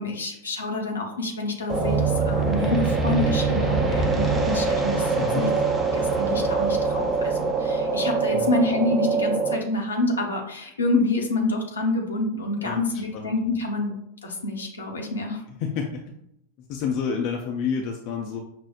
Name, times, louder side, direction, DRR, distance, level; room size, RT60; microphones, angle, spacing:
voice 1, 0.0-5.5 5.9-13.9 14.2-15.4, left 2 dB, 70° left, 0 dB, 0.7 m, -27 dB
sound 1, 1.7-9.6, right 4 dB, 15° right, 0.5 m, -23 dB
voice 2, 5.2-5.6 8.3-8.5 12.6-13.3 15.6-16.0 16.7-18.4, left 6 dB, 45° left, 1 dB, 0.4 m, -29 dB
5.9 x 2.0 x 2.4 m, 0.78 s
figure-of-eight pair, 90°, 0 cm